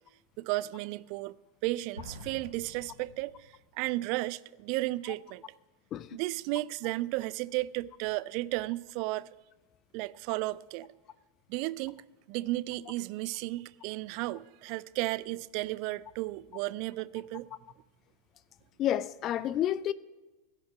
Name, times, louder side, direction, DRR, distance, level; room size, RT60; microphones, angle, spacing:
voice 1, 0.4-1.3 1.6-5.4 6.1-9.3 9.9-10.9 11.5-12.0 12.3-17.5, right 19 dB, 45° right, 0.4 m, -34 dB
Explosion, 2.0-3.7, equal, 90° right, 4.8 m, -48 dB
voice 2, 5.9-6.2 18.8-19.9, left 11 dB, 30° left, 0.4 m, -30 dB
15.5 x 10.5 x 4.9 m
figure-of-eight pair, 90°, 0 cm